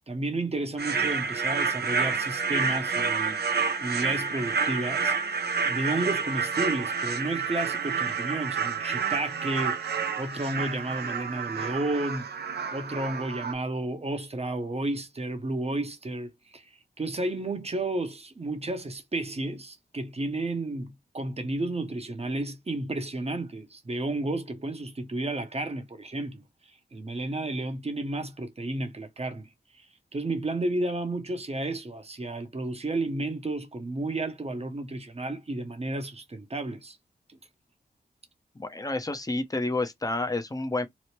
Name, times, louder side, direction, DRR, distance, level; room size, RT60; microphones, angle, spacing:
voice 1, 0.0-3.4 3.8-5.1 5.7-12.3 12.7-26.4 26.9-29.5 29.7-29.9 30.1-37.0, right 2 dB, 35° right, 0.8 m, -32 dB
sound 1, 0.8-13.5, right 5 dB, 65° right, 0.6 m, -29 dB
voice 2, 38.6-40.9, left 2 dB, 20° left, 0.7 m, -29 dB
3.0 x 2.0 x 3.1 m
cardioid pair, 50°, 18 cm